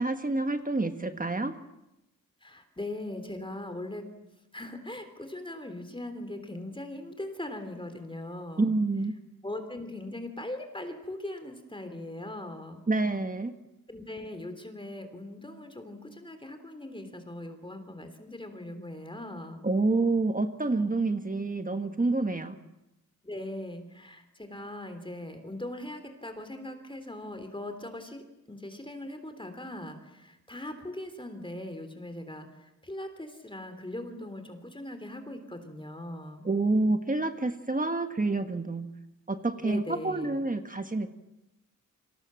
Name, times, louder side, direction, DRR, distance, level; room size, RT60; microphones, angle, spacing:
voice 1, 0.0-1.5 8.6-9.1 12.9-13.5 19.6-22.5 36.4-38.9 39.3-41.1, right 3 dB, 25° right, 8 dB, 1.4 m, -28 dB
voice 2, 2.4-4.1 4.5-8.7 9.4-12.8 13.9-19.6 23.2-36.4 39.6-40.4, left 1 dB, 15° left, 7 dB, 3.4 m, -40 dB
29.5 x 25.5 x 7.7 m, 0.91 s
wide cardioid pair, 145°, 33 cm